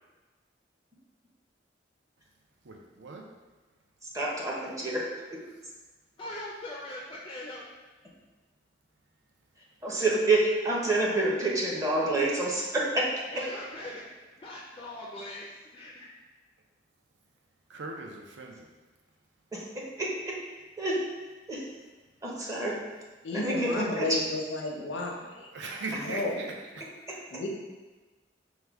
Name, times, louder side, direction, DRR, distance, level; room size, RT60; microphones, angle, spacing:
voice 1, 2.6-3.3 17.7-18.7 25.5-27.2, right 3 dB, 75° right, 2 dB, 0.5 m, -39 dB
voice 2, 4.1-5.4 9.8-13.4 19.5-20.4 20.8-21.0 21.5-21.6 22.2-22.8 23.3-24.2, right 2 dB, 20° right, -4 dB, 0.6 m, -28 dB
voice 3, 6.2-7.6 13.3-14.1 14.4-16.1, left 1 dB, 25° left, -4 dB, 0.4 m, -41 dB
voice 4, 23.2-25.5 25.9-26.3 27.3-27.5, left 2 dB, 90° left, 0 dB, 0.6 m, -32 dB
4.7 x 2.2 x 3.4 m, 1.3 s
head